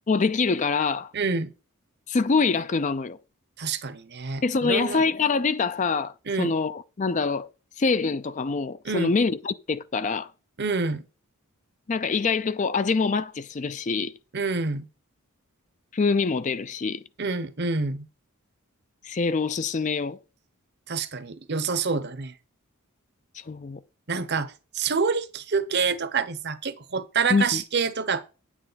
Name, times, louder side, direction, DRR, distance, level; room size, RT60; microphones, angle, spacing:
voice 1, 0.1-1.1 2.1-3.2 4.4-6.1 6.4-7.5 7.8-10.3 11.9-14.1 15.9-17.0 19.0-20.2 23.3-23.8 27.3-27.6, left 4 dB, 35° left, 0.4 m, -25 dB
voice 2, 1.1-1.5 3.6-5.0 6.3-6.5 8.8-9.1 10.6-11.0 14.3-14.9 17.2-18.1 20.9-22.3 24.1-28.3, right 4 dB, 50° right, 0.9 m, -27 dB
9.8 x 8.8 x 4.0 m
head